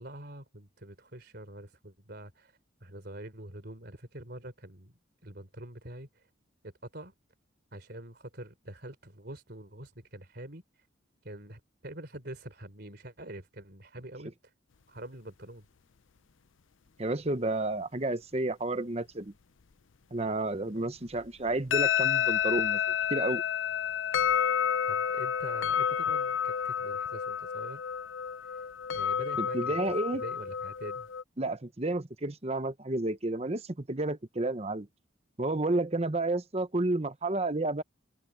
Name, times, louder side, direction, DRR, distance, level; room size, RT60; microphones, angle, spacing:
voice 1, 0.0-2.5 2.8-4.9 5.2-6.2 6.6-7.1 7.7-10.6 11.2-14.3 14.9-15.7 20.7-20.9 24.9-27.8 28.4-28.6 28.9-29.8 30.1-31.1, right 1 dB, 55° right, 3.7 m, -45 dB
voice 2, 17.0-19.3 20.1-22.8 23.1-23.4 29.4-30.2 31.4-34.9 35.4-37.8, right 2 dB, 30° right, 0.9 m, -31 dB
sound 1, 21.5-31.2, left 8 dB, 75° left, 0.6 m, -30 dB
head